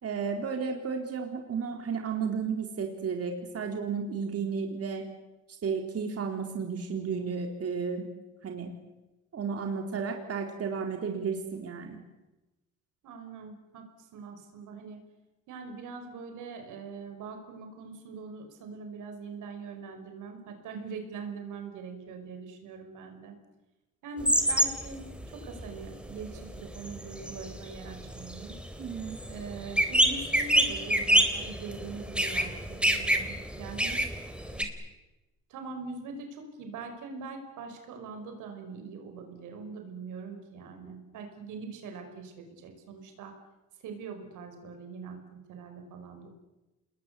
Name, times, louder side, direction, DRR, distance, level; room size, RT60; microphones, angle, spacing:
voice 1, 0.0-5.0 5.6-8.1 8.4-8.7 9.3-12.0 28.8-29.2, right 5 dB, 50° right, 3 dB, 3.8 m, -33 dB
voice 2, 13.0-15.0 15.5-23.4 24.0-28.6 29.3-34.0 34.6-34.7 35.5-43.3 43.8-46.3, right 4 dB, 85° right, 5 dB, 5.7 m, -42 dB
sound 1, 24.2-24.9 25.2-34.6, right 1 dB, 5° right, 3.7 m, -27 dB
27.5 x 21.0 x 8.4 m, 1.1 s
cardioid pair, 90°, 30 cm